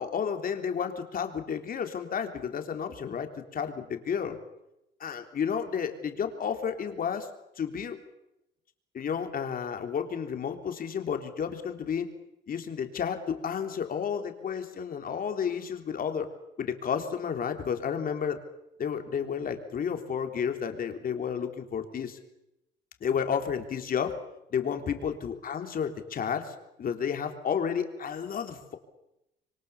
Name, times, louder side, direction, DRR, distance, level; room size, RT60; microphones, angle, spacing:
voice 1, 0.0-4.4 5.0-7.3 7.6-8.0 8.9-12.1 12.5-16.3 16.6-18.4 18.8-22.2 23.0-24.1 24.5-28.8, left 7 dB, 45° left, 6 dB, 3.5 m, -31 dB
26.5 x 24.0 x 7.2 m, 0.86 s
cardioid pair, 120°, 20 cm